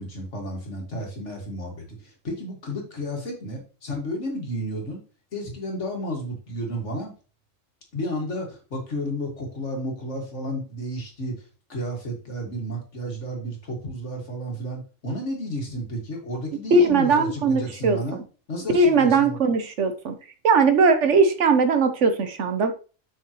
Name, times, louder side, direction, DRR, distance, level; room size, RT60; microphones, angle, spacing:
voice 1, 0.0-5.0 5.3-7.1 7.9-11.3 11.7-18.2 18.5-19.4, equal, 65° left, 1 dB, 2.3 m, -32 dB
voice 2, 16.7-18.2 18.7-20.1 20.4-22.7, right 4 dB, 65° right, 8 dB, 1.2 m, -19 dB
7.5 x 5.8 x 3.0 m, 0.36 s
omnidirectional pair, 1.3 m